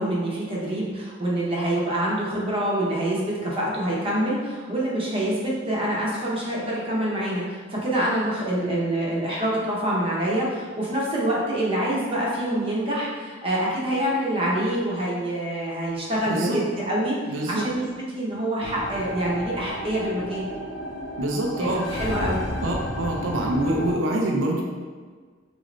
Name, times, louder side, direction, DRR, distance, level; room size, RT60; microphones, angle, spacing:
voice 1, 0.0-20.5 21.6-22.4, right 1 dB, 30° right, -5 dB, 0.8 m, -26 dB
voice 2, 17.3-17.6 21.2-21.8 22.6-24.6, right 1 dB, 75° right, -1 dB, 0.5 m, -25 dB
sound 1, 18.6-23.9, equal, 90° left, 0.8 m, -32 dB
3.9 x 2.5 x 3.1 m, 1.5 s
head